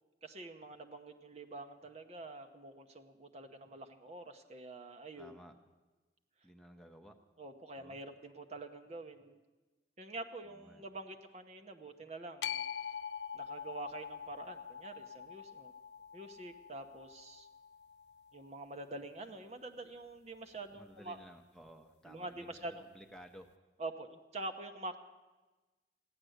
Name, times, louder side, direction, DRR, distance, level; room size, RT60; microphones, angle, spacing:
voice 1, 0.2-5.4 7.4-9.4 10.0-12.6 13.3-15.7 16.1-17.5 18.3-21.2 22.0-22.8 23.8-25.0, right 2 dB, 40° right, 6 dB, 0.9 m, -46 dB
voice 2, 5.2-5.6 6.4-7.2 7.8-8.0 10.4-10.8 20.7-23.5, equal, 5° left, 4 dB, 0.8 m, -55 dB
sound 1, 12.4-18.6, left 8 dB, 75° left, 0.4 m, -44 dB
15.0 x 10.5 x 7.9 m, 1.2 s
head